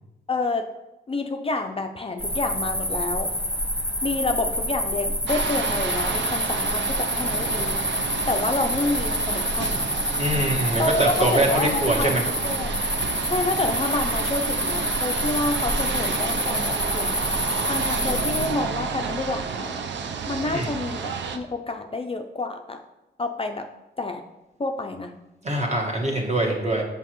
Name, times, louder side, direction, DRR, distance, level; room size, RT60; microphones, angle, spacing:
voice 1, 0.3-0.7 1.1-3.3 4.0-7.8 8.3-9.9 10.8-12.7 13.2-17.3 17.7-19.8 20.3-22.8 23.2-23.7 24.0-24.2 24.6-25.1, left 2 dB, 30° left, 5 dB, 0.4 m, -28 dB
sound 1, 2.2-18.5, equal, 5° left, 1.1 m, -27 dB
sound 2, 5.3-21.4, right 5 dB, 75° right, 0.5 m, -30 dB
voice 2, 10.2-12.2 20.4-20.7 25.4-26.8, right 1 dB, 35° right, 0 dB, 1.4 m, -23 dB
5.8 x 5.4 x 3.0 m, 0.98 s
cardioid pair, 65°, 19 cm